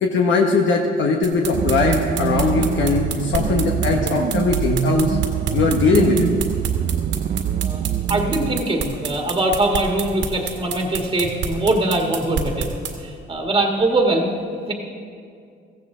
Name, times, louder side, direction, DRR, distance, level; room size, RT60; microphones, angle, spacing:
voice 1, 0.0-5.2 5.5-6.3, left 4 dB, 70° left, 1 dB, 1.2 m, -20 dB
sound 1, 1.2-12.9, right 7 dB, 70° right, 1.9 m, -28 dB
sound 2, 1.5-8.6, right 9 dB, 45° right, 0.4 m, -24 dB
voice 2, 8.1-12.7 13.0-14.3 14.7-14.8, right 2 dB, 25° right, 1 dB, 1.7 m, -22 dB
16.5 x 14.5 x 3.8 m, 2.4 s
cardioid pair, 90°, 20 cm